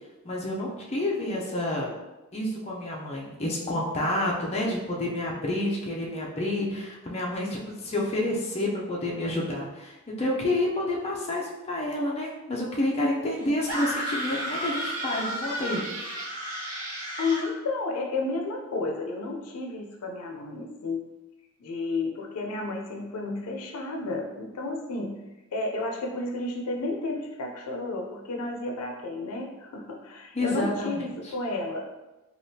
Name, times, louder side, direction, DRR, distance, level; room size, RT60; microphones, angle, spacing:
voice 1, 0.2-1.9 2.3-15.8 30.3-31.0, left 1 dB, 30° left, -3 dB, 0.5 m, -29 dB
sound 1, 13.7-17.5, equal, 65° right, 0.9 m, -32 dB
voice 2, 17.2-21.1 21.6-25.1 25.5-32.0, left 2 dB, 90° left, 1 dB, 0.5 m, -32 dB
3.5 x 2.3 x 2.7 m, 1.1 s
head